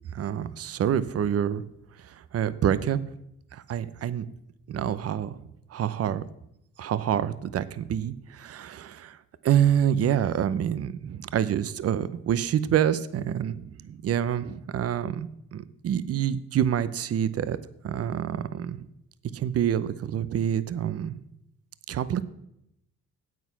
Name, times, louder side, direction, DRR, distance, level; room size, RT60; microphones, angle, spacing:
voice 1, 0.1-1.6 2.3-3.0 3.5-4.3 4.7-5.4 5.7-6.2 6.8-9.2 9.4-13.7 14.0-17.6 17.8-18.9 19.3-21.2 21.9-22.2, right 9 dB, 50° right, 15 dB, 0.7 m, -27 dB
9.2 x 8.2 x 5.7 m, 0.78 s
cardioid pair, 90°, 30 cm